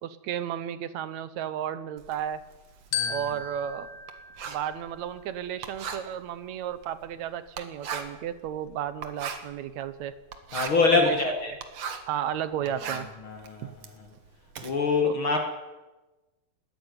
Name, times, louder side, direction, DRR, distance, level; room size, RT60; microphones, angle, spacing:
voice 1, 0.0-2.4 3.1-3.9 4.5-10.1 11.0-11.2 11.5-11.6 12.1-13.1 15.0-15.2, right 10 dB, 70° right, 14 dB, 1.8 m, -33 dB
Writing, 2.0-12.2 12.5-14.7, right 6 dB, 50° right, 2.3 m, -39 dB
Glockenspiel, 2.9-5.4, left 6 dB, 85° left, 3.7 m, -35 dB
voice 2, 10.5-11.5 13.2-13.7 14.6-15.4, left 4 dB, 40° left, 3 dB, 2.4 m, -24 dB
19.5 x 14.5 x 9.6 m, 1.1 s
omnidirectional pair, 4.1 m